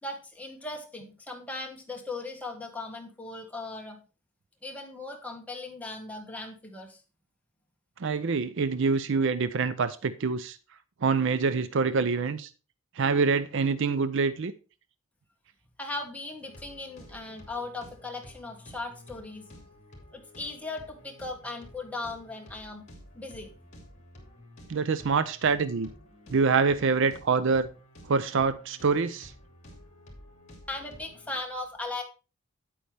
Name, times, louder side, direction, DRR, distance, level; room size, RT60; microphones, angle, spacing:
voice 1, 0.0-4.0 4.6-7.0 15.8-19.5 20.1-22.8 23.1-23.5 30.7-32.0, left 2 dB, 5° left, 1.4 m, -38 dB
voice 2, 8.0-10.6 11.0-12.5 13.0-14.5 24.7-25.9 26.3-27.7 28.1-29.3, right 5 dB, 55° right, 0.5 m, -25 dB
sound 1, 16.4-31.3, equal, 30° left, 2.9 m, -51 dB
9.1 x 8.4 x 3.4 m
head